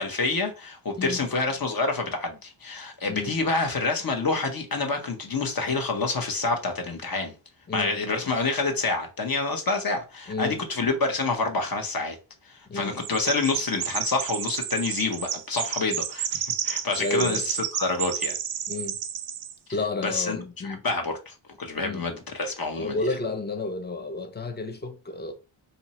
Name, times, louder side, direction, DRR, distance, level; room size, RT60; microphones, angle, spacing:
voice 1, 0.0-7.3 7.7-12.2 12.4-18.4 20.0-20.4 20.6-23.0, left 3 dB, 45° left, 1.0 m, -27 dB
voice 2, 3.1-3.4 7.7-7.9 10.3-10.6 12.7-13.0 17.0-17.4 18.7-19.0 19.7-20.8 21.8-22.1 22.8-25.3, left 3 dB, 20° left, 0.6 m, -31 dB
Chirp tweet, 13.0-19.5, right 9 dB, 85° right, 0.6 m, -31 dB
2.8 x 2.7 x 4.2 m
wide cardioid pair, 105°, 50 cm